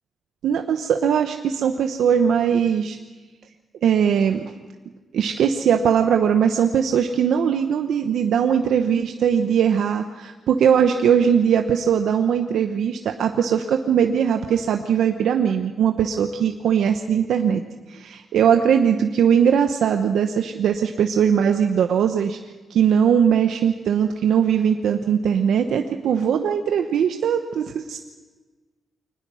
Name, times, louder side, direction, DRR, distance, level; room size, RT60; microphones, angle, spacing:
voice 1, 0.4-3.0 3.8-4.5 5.1-17.6 17.9-22.4 22.7-28.0, right 8 dB, 85° right, 6 dB, 0.9 m, -20 dB
23.5 x 19.5 x 6.3 m, 1.3 s
wide cardioid pair, 165°, 0 cm